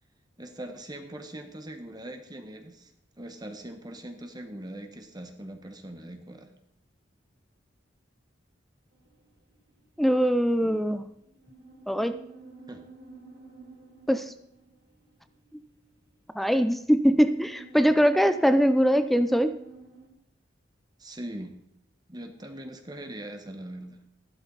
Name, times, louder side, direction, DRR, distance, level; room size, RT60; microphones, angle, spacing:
voice 1, 0.4-2.9 3.2-6.5 10.6-10.9 12.7-12.8 21.0-21.6 22.1-24.0, right 1 dB, 20° right, 6 dB, 1.3 m, -41 dB
sound 1, 8.9-10.1 10.4-20.1, right 4 dB, 60° right, 3.8 m, -50 dB
voice 2, 10.0-11.1 11.9-12.2 14.1-14.3 16.3-19.6, equal, ahead, 11 dB, 0.5 m, -22 dB
15.0 x 12.0 x 4.0 m, 0.76 s
head